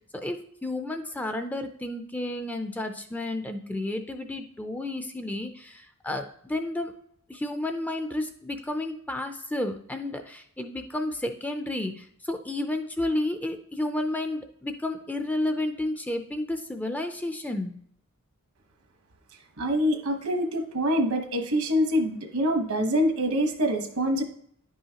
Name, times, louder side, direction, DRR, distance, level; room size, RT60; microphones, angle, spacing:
voice 1, 0.1-6.9 7.3-17.8, left 1 dB, 5° left, 6 dB, 0.4 m, -31 dB
voice 2, 19.6-24.2, equal, 75° right, 5 dB, 1.2 m, -25 dB
10.5 x 5.5 x 2.9 m, 0.66 s
head